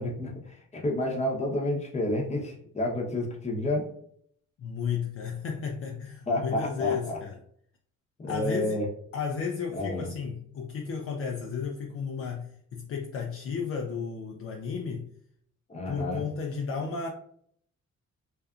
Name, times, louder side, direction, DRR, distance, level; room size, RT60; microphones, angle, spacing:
voice 1, 0.0-3.8 6.3-7.2 8.2-8.9 9.7-10.1 15.7-16.3, left 1 dB, 20° left, 0 dB, 0.7 m, -30 dB
voice 2, 4.6-7.4 8.3-8.8 9.1-15.1 15.9-17.1, left 6 dB, 50° left, 2 dB, 0.4 m, -33 dB
2.6 x 2.4 x 2.3 m, 0.64 s
cardioid pair, 90°, 30 cm